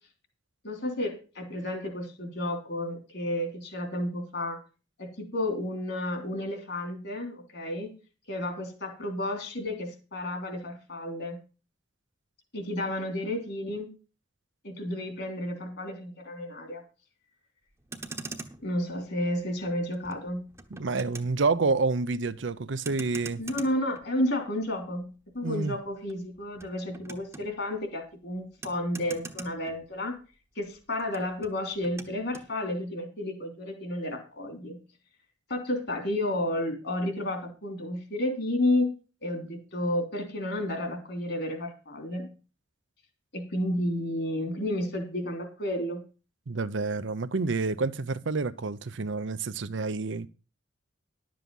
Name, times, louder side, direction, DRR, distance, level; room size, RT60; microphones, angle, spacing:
voice 1, 0.6-4.6 5.0-7.9 8.3-11.4 12.5-13.9 14.6-16.8 18.6-20.4 23.4-30.1 30.5-34.8 35.5-38.9 39.2-42.3 43.3-46.0, left 1 dB, 60° left, 3.2 m, -31 dB
Motor vehicle (road), 17.7-30.3 30.6-32.5, right 3 dB, 15° right, 1.0 m, -45 dB
voice 2, 20.7-23.4 25.4-25.7 46.5-50.3, right 3 dB, 70° right, 0.6 m, -28 dB
11.5 x 7.7 x 5.4 m
head